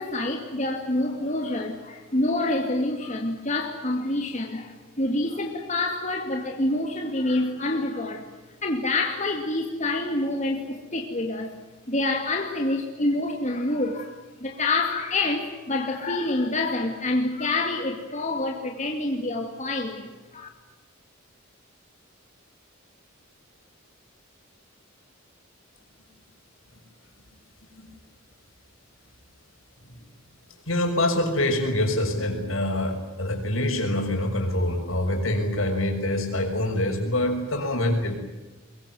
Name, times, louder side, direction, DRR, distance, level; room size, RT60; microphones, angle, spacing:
voice 1, 0.0-8.3 8.6-11.5 11.9-20.5, left 2 dB, 35° left, 2 dB, 2.6 m, -27 dB
voice 2, 30.7-38.2, left 1 dB, 75° left, 4 dB, 6.4 m, -25 dB
23.0 x 23.0 x 9.5 m, 1.1 s
head